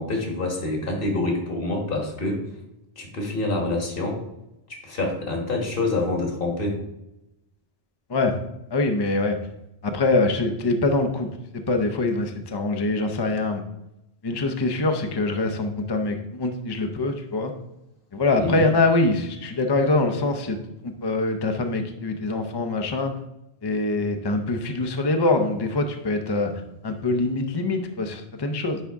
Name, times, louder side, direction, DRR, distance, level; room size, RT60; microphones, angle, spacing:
voice 1, 0.0-2.4 3.0-4.2 4.7-6.8 18.4-18.6, left 2 dB, 60° left, 1 dB, 1.5 m, -26 dB
voice 2, 8.7-9.4 9.8-11.3 11.7-13.6 14.2-17.5 18.1-20.6 20.8-23.1 23.6-26.5 26.8-28.8, left 2 dB, 35° left, 5 dB, 0.5 m, -24 dB
9.8 x 3.6 x 3.5 m, 0.88 s
omnidirectional pair, 1.1 m